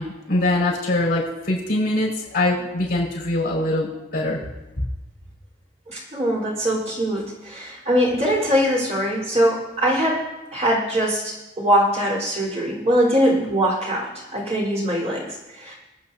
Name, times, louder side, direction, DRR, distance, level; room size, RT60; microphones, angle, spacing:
voice 1, 0.0-4.4 4.8-4.9, left 1 dB, 55° left, -3 dB, 5.5 m, -23 dB
voice 2, 5.9-10.2 10.5-15.7, equal, 40° right, -4 dB, 4.3 m, -22 dB
25.5 x 9.2 x 2.8 m, 1.0 s
head